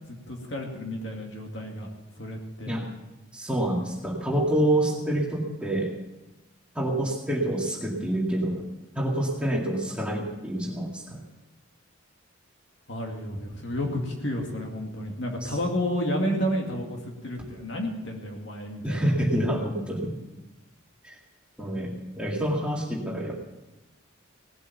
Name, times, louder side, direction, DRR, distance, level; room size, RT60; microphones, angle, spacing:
voice 1, 0.1-1.9 2.2-2.7 12.9-19.3, equal, 60° left, 1 dB, 2.3 m, -31 dB
voice 2, 3.3-5.9 6.7-8.7 8.9-11.2 15.4-15.6 18.8-20.2 21.0-21.2 21.6-23.3, right 1 dB, 5° right, -2 dB, 2.1 m, -27 dB
17.5 x 8.1 x 7.0 m, 1.1 s
head